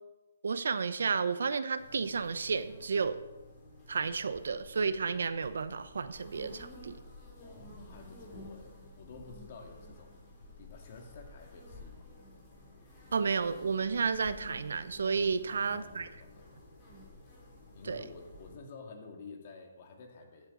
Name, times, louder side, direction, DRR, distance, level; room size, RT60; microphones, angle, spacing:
voice 1, 0.4-3.2 3.9-7.0 13.1-16.1 17.8-18.0, right 5 dB, 70° right, 13 dB, 0.8 m, -32 dB
sound 1, 1.8-18.5, left 1 dB, 20° left, 3.1 m, -52 dB
voice 2, 7.4-10.2 10.6-12.1 15.5-16.6 17.7-20.5, left 4 dB, 40° left, 3 dB, 2.0 m, -51 dB
14.5 x 8.1 x 3.9 m, 1.1 s
hypercardioid pair, 165°, 0 cm